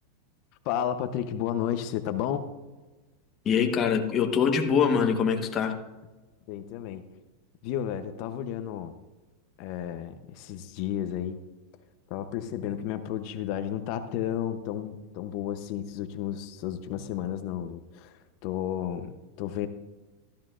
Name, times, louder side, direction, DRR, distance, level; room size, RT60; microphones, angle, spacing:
voice 1, 0.6-2.5 6.5-7.0 7.6-8.9 9.6-11.4 12.1-19.7, left 10 dB, 50° left, 9 dB, 0.8 m, -32 dB
voice 2, 3.4-5.8, left 6 dB, 25° left, 2 dB, 1.2 m, -24 dB
15.0 x 13.0 x 2.5 m, 1.2 s
supercardioid pair, 145°, 0 cm